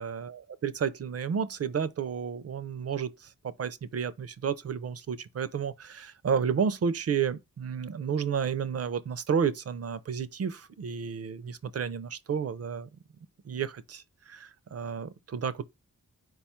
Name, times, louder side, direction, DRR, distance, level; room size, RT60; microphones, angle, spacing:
voice 1, 0.0-3.1 3.6-12.9 13.5-15.6, right 7 dB, 50° right, 0.4 m, -31 dB
4.6 x 2.3 x 4.3 m
wide cardioid pair, 130°, 33 cm